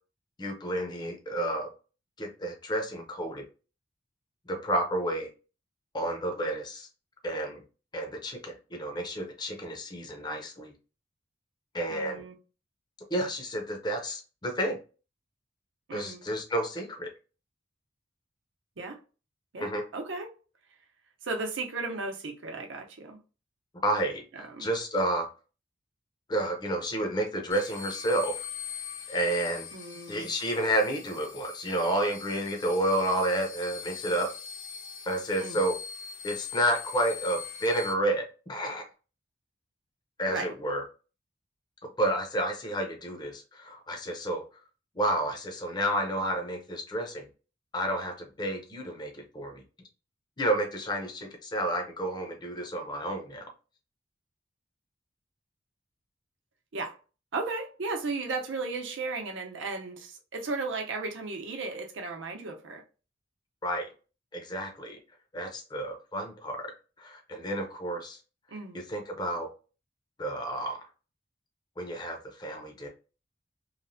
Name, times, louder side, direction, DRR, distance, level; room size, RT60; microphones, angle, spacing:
voice 1, 0.4-1.7 2.2-3.4 4.5-5.3 5.9-6.9 7.2-7.6 7.9-10.7 11.7-12.2 13.1-14.8 15.9-17.1 19.6-19.8 23.8-24.2 24.6-25.3 26.3-28.4 29.1-29.7 30.1-34.3 35.1-35.8 36.2-38.8 40.2-40.8 42.0-44.4 45.0-47.3 47.7-49.6 50.4-53.4 63.6-63.9 64.3-65.0 65.3-66.7 67.0-68.2 68.7-69.5 70.2-70.8 71.8-72.9, right 1 dB, 20° left, 0.6 m, -30 dB
voice 2, 11.9-12.4 15.9-16.2 18.8-19.0 19.5-20.3 21.2-23.2 24.3-24.7 29.7-30.3 35.4-35.6 40.3-40.5 56.7-57.0 57.3-62.8 68.5-68.8, right 3 dB, 75° right, 0.7 m, -35 dB
sound 1, 27.5-37.9, left 7 dB, 80° left, 0.6 m, -42 dB
3.1 x 2.1 x 2.6 m
head